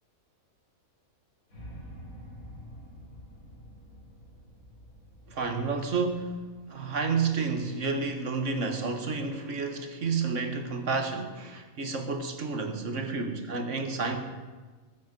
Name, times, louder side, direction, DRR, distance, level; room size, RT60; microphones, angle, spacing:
sound 1, 1.5-7.6, equal, 90° left, 3.6 m, -48 dB
voice 1, 5.3-14.2, right 4 dB, 60° right, 6 dB, 1.7 m, -30 dB
20.5 x 8.5 x 5.3 m, 1.3 s
omnidirectional pair, 1.4 m